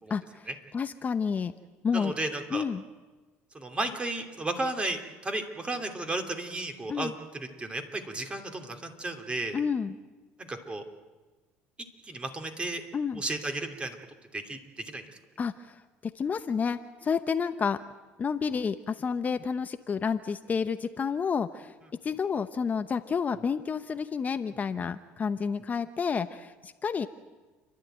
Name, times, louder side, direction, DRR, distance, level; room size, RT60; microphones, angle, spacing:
voice 1, 0.1-1.5 1.8-2.1 2.5-2.8 6.9-7.1 9.5-10.0 12.9-13.2 15.4-15.8 16.1-17.8 18.2-21.7 22.0-27.1, left 6 dB, 35° left, 10 dB, 0.8 m, -30 dB
voice 2, 1.9-2.6 3.5-9.6 10.4-10.8 12.0-12.8 13.2-14.0 14.3-15.1, right 2 dB, 20° right, 5 dB, 3.0 m, -34 dB
29.5 x 11.5 x 9.1 m, 1.3 s
supercardioid pair, 90°, 5 cm